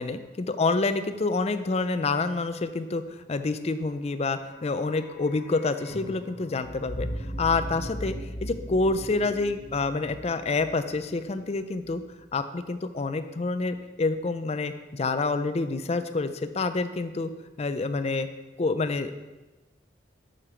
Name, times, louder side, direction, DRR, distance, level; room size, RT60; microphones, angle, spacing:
voice 1, 0.0-3.0 3.3-7.1 7.4-12.0 12.3-17.3 17.6-18.3 18.6-19.3, left 3 dB, 35° left, 10 dB, 0.5 m, -28 dB
sound 1, 4.2-12.3 12.6-12.7, equal, 60° left, 1.3 m, -39 dB
8.8 x 6.5 x 4.4 m, 1.1 s
head